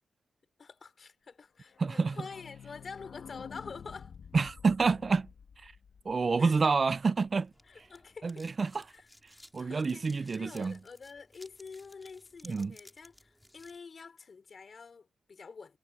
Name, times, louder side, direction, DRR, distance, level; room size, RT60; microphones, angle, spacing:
voice 1, 0.6-4.2 6.4-6.6 7.6-8.5 8.9-9.1 9.6-15.8, left 5 dB, 45° left, 3.2 m, -47 dB
sound 1, 1.7-7.2 7.5-7.6 7.8-7.9 8.2-8.3, left 7 dB, 65° left, 2.2 m, -50 dB
voice 2, 1.8-2.1 4.3-5.3 5.6-5.7 6.1-7.5 8.2-8.7 9.5-10.7 12.5-12.7, right 4 dB, 40° right, 0.4 m, -28 dB
sound 2, 7.2-13.8, left 1 dB, 5° left, 4.6 m, -58 dB
cardioid pair, 105°, 0 cm